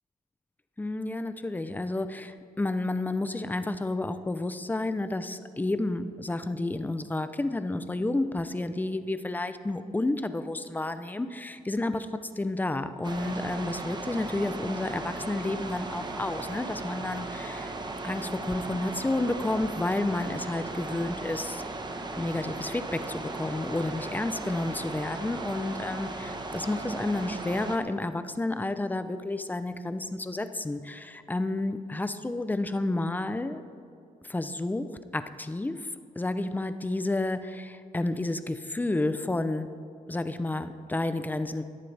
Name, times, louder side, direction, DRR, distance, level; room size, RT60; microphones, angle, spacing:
voice 1, 0.8-12.1 12.4-17.7 18.0-21.6 22.2-33.6 34.3-35.9 36.2-39.7 40.1-41.6, left 2 dB, 10° left, 11 dB, 0.6 m, -31 dB
sound 1, 13.0-27.8, right 2 dB, 30° right, 1.1 m, -37 dB
17.0 x 11.0 x 3.4 m, 2.6 s
cardioid pair, 105°, 15 cm